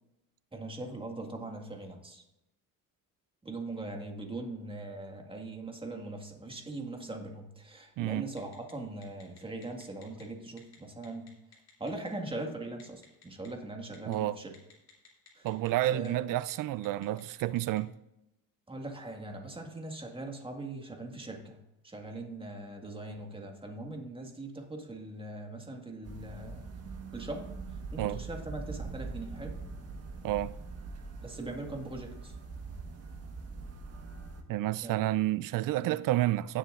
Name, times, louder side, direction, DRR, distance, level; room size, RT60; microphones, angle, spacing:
voice 1, 0.5-2.2 3.4-11.3 11.8-14.5 15.3-15.5 15.9-16.4 18.7-21.6 21.8-26.7 27.1-29.6 31.2-32.4 34.8-35.1 35.8-36.0, right 2 dB, 15° right, 1.8 m, -41 dB
Telephone, 8.4-8.7 9.0-10.2 10.6-10.8 11.0-12.1 12.8-13.5 13.9-14.1 14.5-16.1 16.4-16.5 16.8-17.8, left 6 dB, 45° left, 2.9 m, -56 dB
voice 2, 14.1-14.4 15.4-17.9 28.0-28.2 30.2-30.5 34.5-36.6, right 15 dB, 65° right, 0.5 m, -30 dB
sound 1, 26.0-34.4, right 4 dB, 45° right, 1.4 m, -42 dB
16.5 x 7.2 x 2.5 m
cardioid pair, 95°, 36 cm